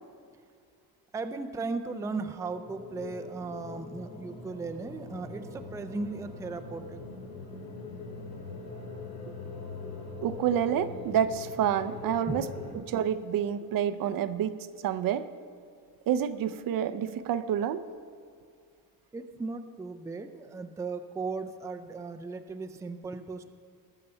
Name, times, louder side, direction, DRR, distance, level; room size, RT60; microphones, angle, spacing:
voice 1, 1.1-7.0 12.3-12.5 19.1-23.5, right 3 dB, 10° right, 8 dB, 0.4 m, -36 dB
sound 1, 2.4-12.7, left 3 dB, 85° left, 3.5 m, -42 dB
voice 2, 10.2-12.5 12.7-15.3 16.1-17.8, right 9 dB, 60° right, 11 dB, 0.6 m, -28 dB
20.0 x 6.7 x 5.5 m, 2.3 s
cardioid pair, 130°, 40 cm